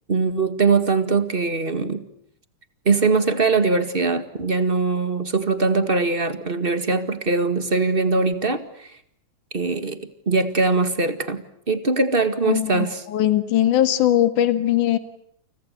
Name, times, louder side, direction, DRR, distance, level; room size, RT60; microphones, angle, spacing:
voice 1, 0.1-2.0 2.8-8.9 9.5-10.0 10.2-13.0, right 4 dB, 25° right, 10 dB, 1.4 m, -21 dB
voice 2, 12.4-15.0, left 12 dB, 70° left, 10 dB, 3.3 m, -20 dB
29.5 x 29.5 x 6.8 m, 0.67 s
omnidirectional pair, 3.7 m